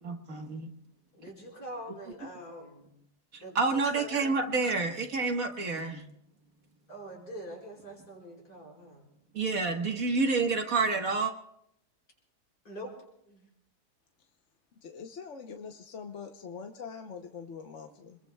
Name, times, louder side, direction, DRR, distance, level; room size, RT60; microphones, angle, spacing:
voice 1, 0.0-0.7 3.3-6.0 9.3-11.3, right 4 dB, 60° right, 4 dB, 1.8 m, -29 dB
voice 2, 1.1-3.0 3.4-4.8 6.9-9.1 12.6-13.0 13.3-13.5, equal, 75° left, -3 dB, 5.5 m, -44 dB
voice 3, 14.7-18.2, left 6 dB, 55° left, 4 dB, 1.1 m, -43 dB
28.5 x 21.5 x 2.3 m, 0.74 s
omnidirectional pair, 1.7 m